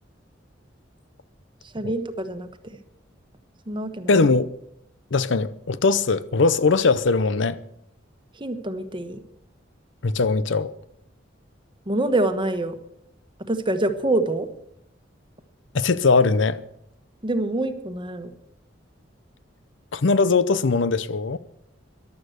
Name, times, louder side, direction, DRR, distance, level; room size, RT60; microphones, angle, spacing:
voice 1, 1.7-2.5 3.7-4.1 8.4-9.2 11.9-12.8 13.5-14.5 17.2-18.3, right 2 dB, 25° right, 1.2 m, -25 dB
voice 2, 4.1-4.5 5.1-7.6 10.0-10.7 15.7-16.6 19.9-21.4, left 4 dB, 70° left, 0.7 m, -20 dB
14.5 x 11.5 x 6.5 m
head